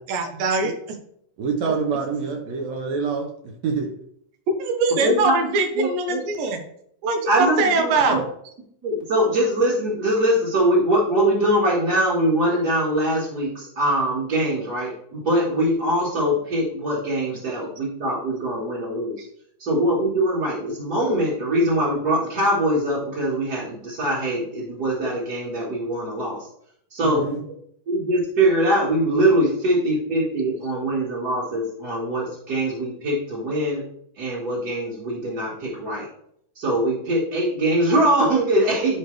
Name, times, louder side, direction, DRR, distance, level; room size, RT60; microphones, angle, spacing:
voice 1, 0.1-0.7 4.6-6.6 7.0-8.2, right 3 dB, 85° right, 5 dB, 2.7 m, -22 dB
voice 2, 1.4-3.9 27.0-27.4, right 5 dB, 70° right, 1 dB, 1.9 m, -26 dB
voice 3, 5.0-6.2 7.3-8.2 8.8-19.2 19.6-26.5 26.9-27.4 27.9-33.8 34.2-36.1 36.6-39.0, right 1 dB, 35° right, -8 dB, 1.7 m, -22 dB
11.0 x 4.7 x 3.3 m, 0.69 s
omnidirectional pair, 3.9 m